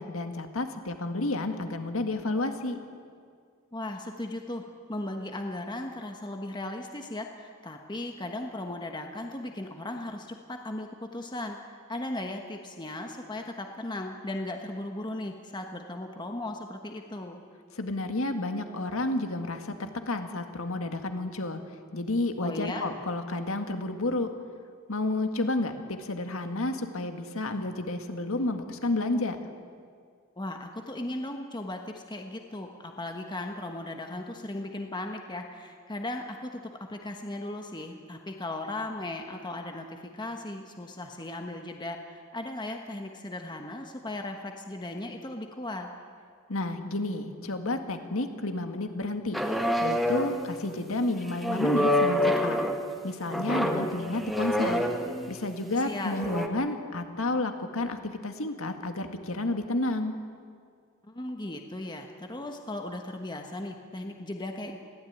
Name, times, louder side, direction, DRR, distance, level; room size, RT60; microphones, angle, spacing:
voice 1, 0.0-2.8 17.7-21.6 21.9-24.3 24.9-25.7 26.0-29.4 46.5-49.4 49.8-52.6 53.0-54.8 55.3-60.2, left 2 dB, 70° left, 6 dB, 2.0 m, -31 dB
voice 2, 3.7-4.6 4.9-10.9 11.1-17.4 22.4-22.9 30.4-36.6 36.9-45.9 55.8-56.2 61.0-64.8, left 1 dB, 20° left, 3 dB, 1.3 m, -37 dB
sound 1, 49.3-50.5 51.4-52.8 53.3-55.3 56.2-56.5, equal, ahead, 1.5 m, -26 dB
22.0 x 16.5 x 9.4 m, 2.1 s
head